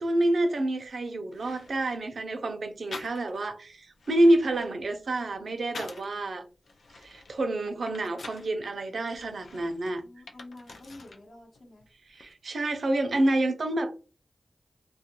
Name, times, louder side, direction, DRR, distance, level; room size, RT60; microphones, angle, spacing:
voice 1, 0.0-6.4 7.0-10.0 12.1-13.9, right 1 dB, 80° right, 0.4 m, -27 dB
sound 1, 0.9-1.0 1.3-2.1 2.9-3.5 3.9-6.2 6.6-8.5 9.1-11.2 11.5-12.3, left 3 dB, 90° left, 0.3 m, -46 dB
voice 2, 9.5-11.9, left 1 dB, 65° left, 0.8 m, -49 dB
2.3 x 2.1 x 2.8 m
cardioid pair, 50°, 0 cm